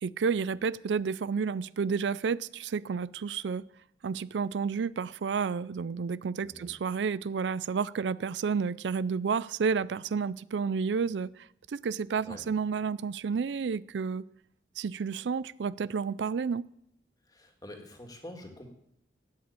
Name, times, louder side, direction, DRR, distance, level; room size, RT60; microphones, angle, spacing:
voice 1, 0.0-3.6 4.0-14.2 14.8-16.6, right 5 dB, 85° right, 20 dB, 0.4 m, -31 dB
voice 2, 6.4-6.7 12.2-12.4 17.3-18.7, left 1 dB, 20° left, 4 dB, 2.1 m, -46 dB
12.5 x 8.7 x 8.8 m, 0.76 s
head